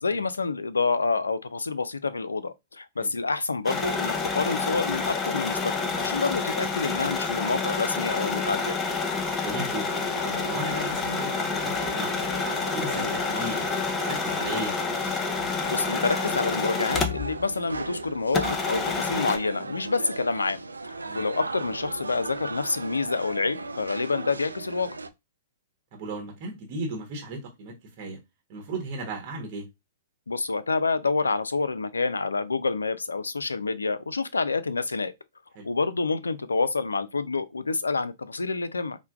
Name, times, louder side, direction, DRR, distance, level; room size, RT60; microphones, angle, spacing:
voice 1, 0.0-8.8 12.9-13.1 15.7-20.6 21.2-24.9 30.3-35.1 35.6-39.0, left 4 dB, 80° left, 0.3 m, -28 dB
sound 1, 3.7-17.4 17.7-17.8 18.3-19.4, left 4 dB, 20° left, 0.5 m, -28 dB
voice 2, 9.4-10.1 10.4-12.3 12.6-14.8 21.0-21.3 25.9-28.2 28.5-29.6 35.5-35.7, right 2 dB, 45° right, 1.0 m, -36 dB
sound 2, 9.9-25.1, right 3 dB, 85° right, 0.3 m, -37 dB
4.4 x 2.1 x 2.3 m
figure-of-eight pair, 110°, 0 cm